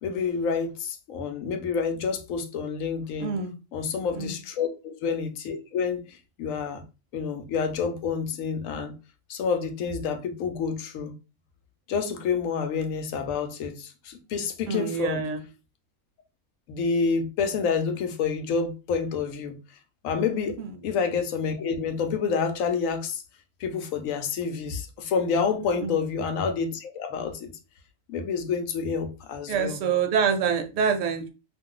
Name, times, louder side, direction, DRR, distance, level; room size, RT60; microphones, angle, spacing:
voice 1, 0.0-3.3 3.7-6.8 7.1-8.9 9.3-11.1 11.9-15.2 16.7-19.5 20.0-20.6 20.8-23.2 23.6-27.5 28.1-29.8, left 5 dB, 90° left, 1.0 m, -28 dB
voice 2, 3.2-3.6 4.1-4.4 14.7-15.4 20.6-20.8 25.8-26.1 29.5-31.3, right 6 dB, 75° right, 1.0 m, -26 dB
2.5 x 2.3 x 3.7 m
omnidirectional pair, 1.3 m